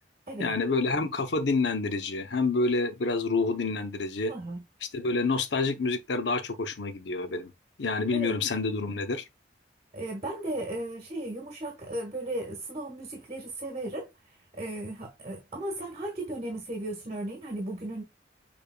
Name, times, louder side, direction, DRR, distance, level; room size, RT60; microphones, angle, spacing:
voice 1, 0.4-4.3 4.9-7.5 7.8-9.2, left 3 dB, 80° left, 0.7 m, -28 dB
voice 2, 4.3-4.6 8.1-8.4 9.9-18.0, right 1 dB, 40° right, 1.4 m, -36 dB
6.6 x 3.6 x 2.2 m
head